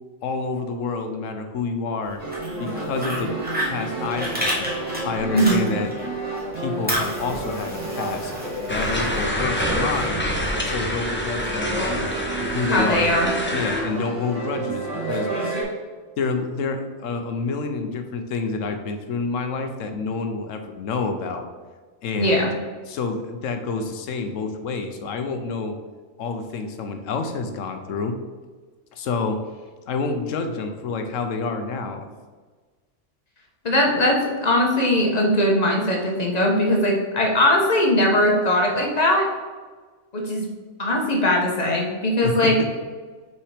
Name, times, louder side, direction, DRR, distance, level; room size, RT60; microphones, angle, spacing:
voice 1, 0.2-2.2 2.6-3.3 3.6-4.7 5.0-5.9 6.5-8.3 8.7-10.2 10.6-12.1 12.4-13.2 13.5-15.3 16.2-21.5 22.0-22.5 22.9-25.8 26.2-28.2 28.9-29.4 29.9-32.1 42.2-42.5, left 4 dB, 90° left, 7 dB, 1.1 m, -28 dB
Fire, 2.1-6.1 6.4-9.2, equal, 10° right, 1.5 m, -30 dB
sound 1, 2.2-15.6, right 2 dB, 75° right, 2.3 m, -30 dB
sound 2, 8.7-13.8, left 1 dB, 10° left, 0.9 m, -27 dB
voice 2, 12.7-13.3 22.2-22.5 33.6-39.3 40.1-40.4 40.8-42.6, left 1 dB, 35° left, 0 dB, 1.2 m, -20 dB
5.7 x 4.3 x 5.0 m, 1.4 s
omnidirectional pair, 1.3 m